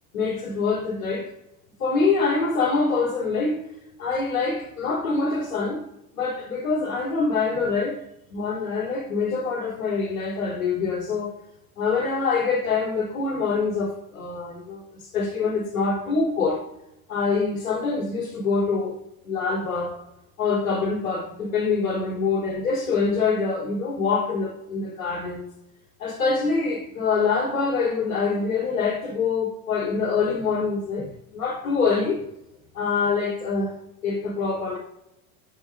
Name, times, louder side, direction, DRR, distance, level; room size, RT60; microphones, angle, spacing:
voice 1, 0.1-1.3 1.8-3.6 4.0-5.8 6.1-8.0 8.3-11.3 11.8-16.6 17.1-19.0 19.2-20.0 20.4-25.5 26.0-32.2 32.7-33.8 34.0-34.8, left 4 dB, 70° left, 3.2 m, -25 dB
10.5 x 6.4 x 2.6 m
hypercardioid pair, 75°, 45 cm